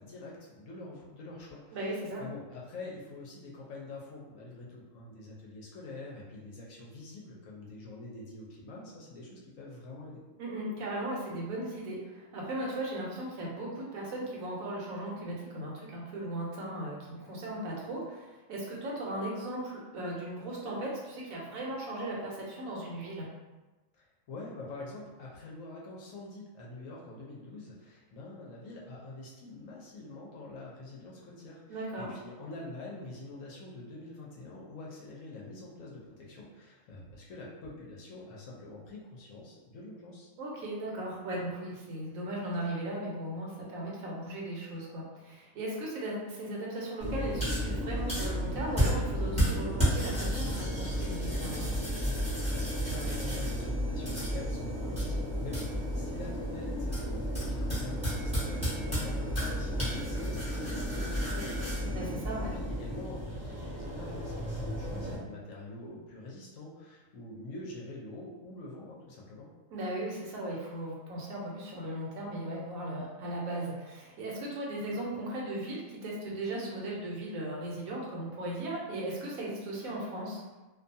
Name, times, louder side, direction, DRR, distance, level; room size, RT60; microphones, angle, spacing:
voice 1, 0.0-1.9 2.2-10.2 23.9-40.3 52.5-69.5, left 2 dB, 70° left, -4 dB, 0.9 m, -45 dB
voice 2, 1.7-2.2 10.4-23.3 31.7-32.1 40.4-51.7 61.9-62.6 69.7-80.4, right 1 dB, 75° right, -3 dB, 1.0 m, -37 dB
sound 1, 47.0-65.2, equal, 5° right, 0.9 m, -32 dB
2.5 x 2.2 x 2.6 m, 1.2 s
omnidirectional pair, 1.5 m